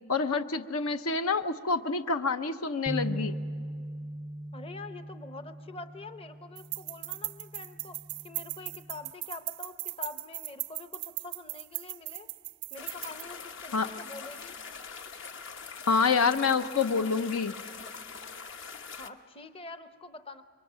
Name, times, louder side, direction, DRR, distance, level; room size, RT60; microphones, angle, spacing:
voice 1, 0.1-3.4 13.7-13.9 15.9-17.6, left 5 dB, 75° left, 10 dB, 0.7 m, -27 dB
sound 1, 2.9-9.1, right 1 dB, 10° right, 0.5 m, -40 dB
voice 2, 4.5-8.0 8.2-12.3 12.7-14.6 19.0-20.4, left 3 dB, 25° left, 9 dB, 0.8 m, -45 dB
sound 2, 6.6-13.2, right 19 dB, 75° right, 0.5 m, -38 dB
sound 3, 12.8-19.1, left 5 dB, 55° left, 1.1 m, -43 dB
27.0 x 23.5 x 6.3 m, 2.4 s
head